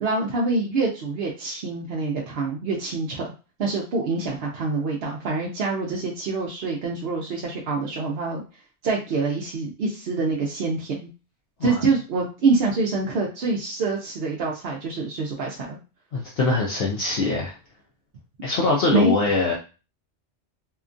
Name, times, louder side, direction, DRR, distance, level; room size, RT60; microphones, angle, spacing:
voice 1, 0.0-3.3 3.6-8.4 8.8-11.1 11.6-15.8 18.9-19.1, right 3 dB, 65° right, -2 dB, 0.8 m, -25 dB
voice 2, 16.1-17.5 18.4-19.5, left 3 dB, 65° left, -2 dB, 0.8 m, -23 dB
2.8 x 2.3 x 2.5 m, 0.32 s
omnidirectional pair, 1.2 m